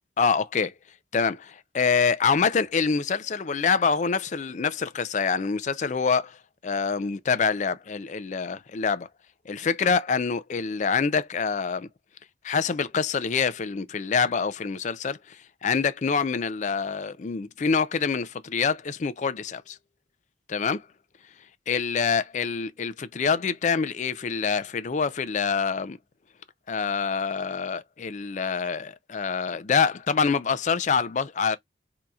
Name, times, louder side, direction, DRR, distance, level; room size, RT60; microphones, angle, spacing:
voice 1, 0.2-0.7 1.1-6.4 6.6-9.1 9.5-11.9 12.4-19.8 20.5-20.8 21.7-26.0 26.7-31.6, left 5 dB, 40° left, 0.4 m, -26 dB
4.4 x 2.7 x 2.3 m
head